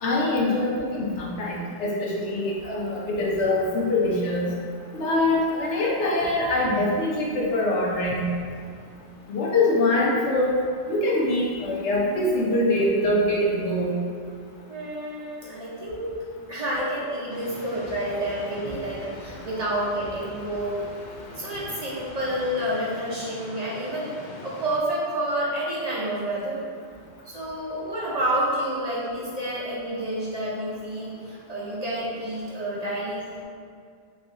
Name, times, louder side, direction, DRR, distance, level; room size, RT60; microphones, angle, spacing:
voice 1, 0.0-4.5 4.9-8.3 9.3-10.5 10.9-14.0, left 1 dB, 75° left, -4 dB, 1.1 m, -24 dB
voice 2, 14.7-16.1 16.5-20.8 21.4-26.6 27.3-33.2, right 1 dB, 40° right, -7 dB, 0.7 m, -29 dB
sound 1, 17.3-24.8, left 1 dB, 50° left, 0.6 m, -43 dB
4.5 x 2.7 x 3.6 m, 2.2 s
omnidirectional pair, 1.2 m